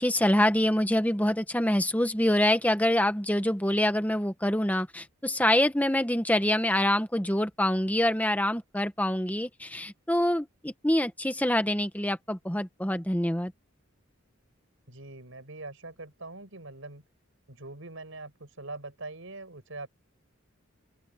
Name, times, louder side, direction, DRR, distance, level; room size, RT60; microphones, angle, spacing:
voice 1, 0.0-13.5, left 1 dB, 10° left, 1.5 m, -26 dB
voice 2, 14.9-17.0 17.5-19.9, right 2 dB, 70° right, 6.4 m, -43 dB
open air
head